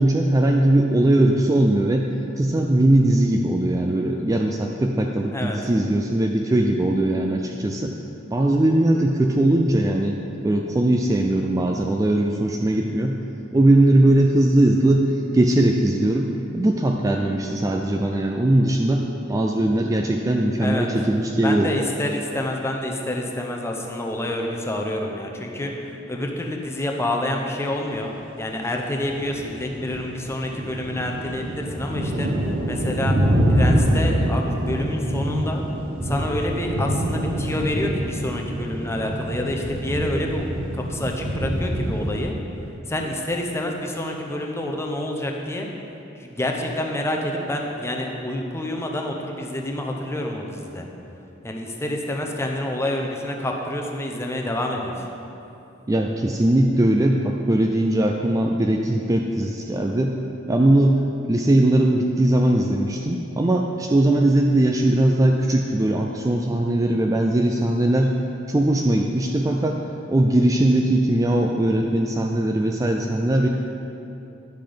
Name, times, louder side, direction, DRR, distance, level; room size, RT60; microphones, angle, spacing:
voice 1, 0.0-2.1 2.4-7.9 8.3-10.2 10.4-13.2 13.5-21.7 55.9-60.2 60.5-61.0 61.3-68.1 68.5-69.8 70.1-73.5, right 1 dB, 15° right, 2 dB, 0.3 m, -20 dB
voice 2, 21.4-33.2 33.5-35.6 36.0-40.5 40.7-42.3 42.9-45.7 46.1-50.9 51.4-55.0, left 1 dB, 15° left, 1 dB, 0.7 m, -28 dB
sound 1, 29.0-42.3, equal, 45° right, 1.0 m, -25 dB
10.5 x 5.8 x 5.1 m, 2.9 s
head